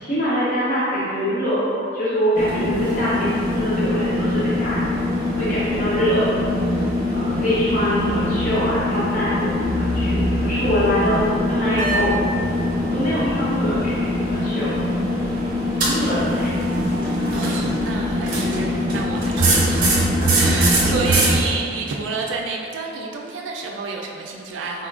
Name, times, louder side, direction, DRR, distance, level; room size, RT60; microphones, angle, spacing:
voice 1, 0.0-5.1 5.4-6.3 6.7-12.2 12.8-14.8 15.2-15.3 15.7-16.6 20.8-21.0, equal, 45° left, -11 dB, 0.7 m, -24 dB
sound 1, 2.4-21.4, left 1 dB, 45° right, 0.7 m, -22 dB
voice 2, 17.3-24.9, right 4 dB, 80° right, 0 dB, 0.3 m, -29 dB
4.1 x 2.3 x 2.3 m, 2.5 s
head